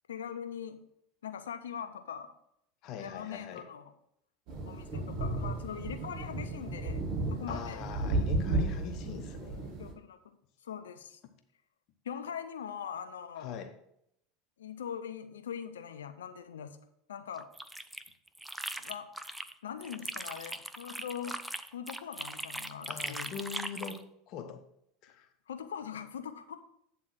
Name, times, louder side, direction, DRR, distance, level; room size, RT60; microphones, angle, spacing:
voice 1, 0.1-0.8 1.2-2.3 3.0-3.9 4.7-7.0 7.3-7.8 9.8-10.3 10.6-11.2 12.0-13.5 14.6-16.8 17.1-17.5 18.8-19.1 19.6-21.4 21.7-23.4 25.5-26.6, left 8 dB, 80° left, 8 dB, 0.7 m, -41 dB
voice 2, 2.8-3.7 7.5-9.7 13.4-13.7 22.9-24.0 24.3-24.6 25.0-25.3, left 7 dB, 50° left, 7 dB, 0.9 m, -42 dB
sound 1, 4.5-9.9, right 2 dB, 50° right, 2.6 m, -33 dB
sound 2, 17.4-19.5 19.8-24.0, right 1 dB, 5° right, 0.5 m, -40 dB
8.9 x 3.7 x 6.1 m, 0.74 s
hypercardioid pair, 80°, 0 cm